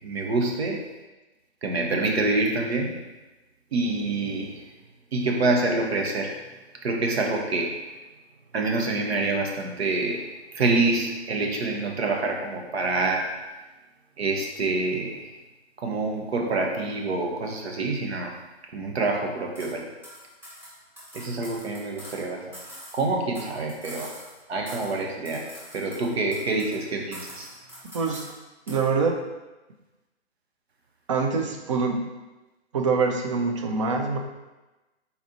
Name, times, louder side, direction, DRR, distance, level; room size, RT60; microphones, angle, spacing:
voice 1, 0.0-0.8 1.6-2.9 3.7-4.6 5.1-6.4 6.8-7.8 8.5-10.3 10.5-13.3 14.2-15.3 15.8-18.3 18.7-19.9 21.1-22.6 22.9-24.1 24.5-25.5 25.7-27.5, right 3 dB, 65° right, 1 dB, 1.0 m, -26 dB
sound 1, 19.5-19.7 20.0-22.2 22.5-24.4 24.7-25.0 25.2-26.8 27.1-28.4 28.7-28.9, equal, 5° right, 0.8 m, -44 dB
voice 2, 27.9-28.3 28.7-29.2 31.1-32.1 32.7-34.2, right 4 dB, 30° right, 3 dB, 0.4 m, -25 dB
4.2 x 4.1 x 2.8 m, 1.1 s
figure-of-eight pair, 135°, 34 cm